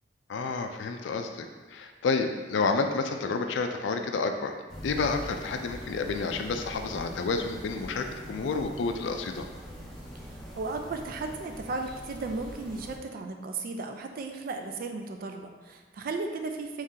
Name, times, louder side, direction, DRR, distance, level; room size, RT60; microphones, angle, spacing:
voice 1, 0.3-4.5 4.8-9.5, left 4 dB, 80° left, 6 dB, 0.3 m, -30 dB
sound 1, 4.7-13.0, equal, ahead, 0.6 m, -43 dB
voice 2, 10.2-16.8, right 3 dB, 50° right, 5 dB, 0.3 m, -35 dB
3.1 x 2.8 x 3.6 m, 1.4 s
head